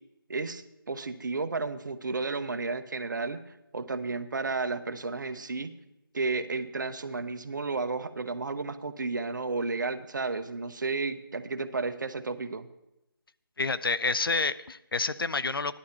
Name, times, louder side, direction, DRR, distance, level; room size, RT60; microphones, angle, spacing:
voice 1, 0.3-5.7 6.1-12.7, right 3 dB, 55° right, 10 dB, 1.0 m, -32 dB
voice 2, 13.6-15.8, left 3 dB, 70° left, 15 dB, 0.7 m, -28 dB
15.0 x 11.5 x 4.3 m, 0.90 s
figure-of-eight pair, 165°, 12 cm